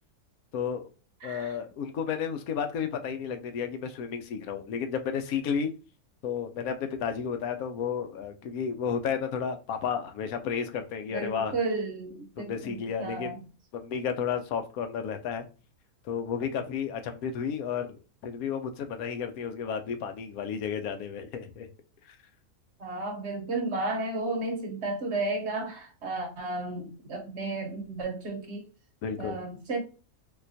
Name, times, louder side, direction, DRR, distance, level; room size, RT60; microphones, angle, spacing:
voice 1, 0.5-0.8 1.2-5.7 6.2-11.5 12.4-13.4 13.7-15.5 16.0-21.7 22.1-22.2 29.0-29.4, left 7 dB, 80° left, 1.1 m, -32 dB
voice 2, 1.2-1.5 11.1-13.4 22.8-28.7 29.2-29.8, right 2 dB, 55° right, 1.0 m, -33 dB
4.1 x 2.3 x 2.6 m
omnidirectional pair, 1.5 m